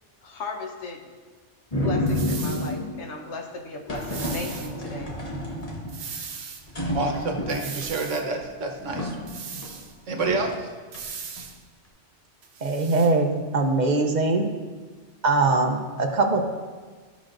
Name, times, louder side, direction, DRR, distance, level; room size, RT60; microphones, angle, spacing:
voice 1, 0.2-1.1 1.8-5.2, left 2 dB, 70° left, 3 dB, 1.2 m, -36 dB
sound 1, 1.7-3.0 3.9-6.2 6.6-7.9 8.3-8.4 8.8-9.8 10.2-10.5 10.9-11.4, left 1 dB, 35° left, 1.2 m, -30 dB
sound 2, 2.1-2.7 3.9-4.7 5.9-6.6 7.5-8.3 9.3-9.9 10.9-11.6 12.4-13.1, right 6 dB, 65° right, 0.9 m, -38 dB
voice 2, 6.9-9.2 10.1-10.7, right 3 dB, 90° right, 2 dB, 1.3 m, -28 dB
voice 3, 12.6-14.5 15.2-16.4, right 3 dB, 45° right, 3 dB, 0.7 m, -22 dB
13.0 x 6.0 x 2.5 m, 1.5 s
omnidirectional pair, 1.2 m